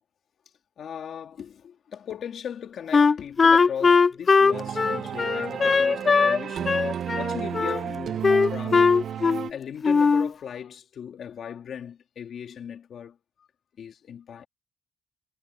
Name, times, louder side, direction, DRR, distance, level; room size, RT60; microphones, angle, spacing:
voice 1, 0.8-6.9 7.2-8.9 9.5-13.5 13.8-14.5, left 8 dB, 60° left, 3.3 m, -38 dB
Wind instrument woodwind instrument, 2.9-6.4 6.6-7.8 8.2-9.5 9.8-10.3, left 5 dB, 35° left, 0.6 m, -20 dB
sound 1, 4.5-9.5, right 9 dB, 60° right, 1.2 m, -32 dB
cardioid pair, 90°, 0 cm